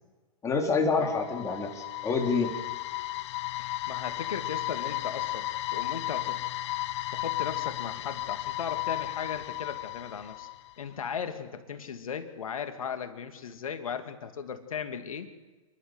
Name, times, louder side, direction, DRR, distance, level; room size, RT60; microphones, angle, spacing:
voice 1, 0.4-2.5, left 4 dB, 15° left, 3 dB, 3.7 m, -27 dB
sound 1, 0.7-10.8, left 16 dB, 50° left, 0.6 m, -34 dB
voice 2, 3.6-6.4 7.1-10.5 10.8-15.3, left 7 dB, 75° left, 8 dB, 2.6 m, -37 dB
28.5 x 11.5 x 8.1 m, 1.3 s
hypercardioid pair, 120°, 18 cm